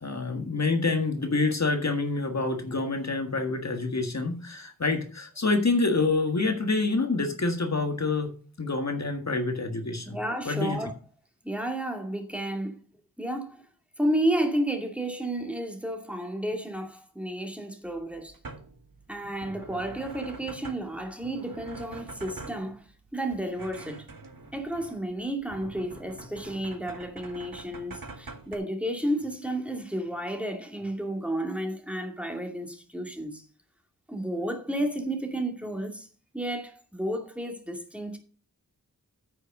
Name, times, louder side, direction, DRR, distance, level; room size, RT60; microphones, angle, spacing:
voice 1, 0.0-8.3 8.6-10.2 10.4-10.8, left 3 dB, 50° left, 1.7 m, -27 dB
voice 2, 10.0-10.9 11.4-12.8 13.2-13.6 14.0-18.3 19.1-22.9 23.1-24.1 24.5-33.4 34.1-36.1 36.3-38.2, right 1 dB, 5° right, 2.4 m, -32 dB
sound 1, 17.9-28.6, right 3 dB, 70° right, 1.8 m, -45 dB
9.4 x 6.5 x 6.4 m
wide cardioid pair, 70°, 36 cm